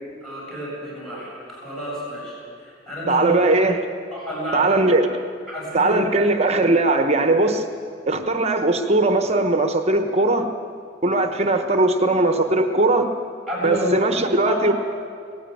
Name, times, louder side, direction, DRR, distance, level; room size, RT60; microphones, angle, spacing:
voice 1, 0.2-3.3 4.1-4.7 5.5-6.0 13.5-14.0 14.5-14.6, equal, 5° left, -6 dB, 7.5 m, -30 dB
voice 2, 3.1-3.8 4.5-5.1 5.7-7.6 8.1-10.5 11.0-13.1 13.6-14.7, right 2 dB, 35° right, 7 dB, 1.1 m, -19 dB
18.5 x 16.0 x 9.2 m, 2.4 s
head